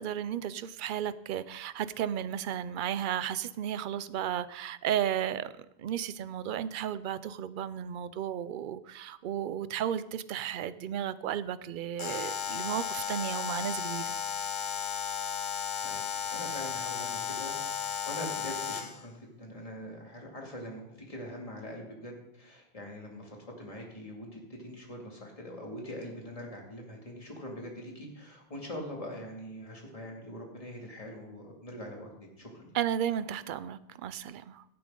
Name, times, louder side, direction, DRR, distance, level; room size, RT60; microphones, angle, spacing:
voice 1, 0.0-5.5 5.8-14.1 32.7-34.6, right 10 dB, 60° right, 15 dB, 0.7 m, -34 dB
Alarm, 12.0-19.0, left 7 dB, 50° left, 0.9 m, -34 dB
voice 2, 15.8-32.1 32.4-32.7, equal, 35° left, -1 dB, 2.5 m, -43 dB
16.5 x 8.6 x 3.8 m, 0.82 s
omnidirectional pair, 1.1 m